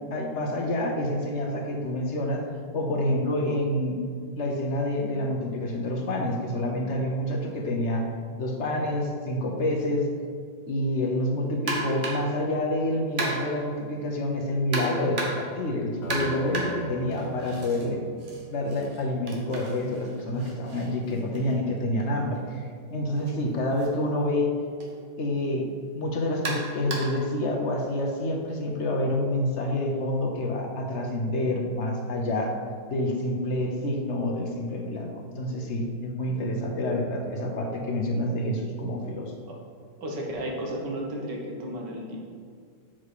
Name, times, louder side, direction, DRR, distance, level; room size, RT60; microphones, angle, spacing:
voice 1, 0.0-2.4 2.7-4.0 4.4-8.0 8.4-10.1 10.7-18.0 18.5-22.6 22.9-24.5 25.2-25.7 25.9-32.6 32.9-39.3, left 1 dB, 50° left, 1 dB, 0.9 m, -28 dB
sound 1, 11.7-12.4 13.2-13.7 14.7-15.6 16.1-17.9 18.2-22.1 23.1-23.3 23.8-23.9 24.8-24.9 26.4-27.3, right 2 dB, 45° right, 1.4 m, -34 dB
sound 2, 16.0-20.3, left 2 dB, 80° left, 1.9 m, -43 dB
voice 2, 40.0-42.2, right 1 dB, 75° right, -1 dB, 1.9 m, -33 dB
7.5 x 4.8 x 4.8 m, 2.2 s
omnidirectional pair, 2.0 m